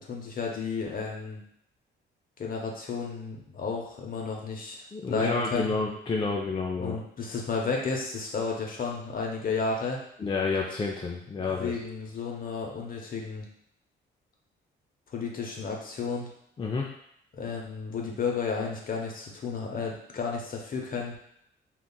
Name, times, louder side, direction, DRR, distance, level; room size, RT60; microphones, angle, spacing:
voice 1, 0.0-1.4 2.4-5.7 6.8-10.0 11.6-13.4 15.1-16.3 17.3-21.2, left 4 dB, 45° left, 0 dB, 0.8 m, -32 dB
voice 2, 4.9-6.9 10.2-11.7 16.6-16.9, left 4 dB, 25° left, -1 dB, 0.3 m, -29 dB
3.7 x 2.3 x 2.3 m, 0.72 s
cardioid pair, 90°, 20 cm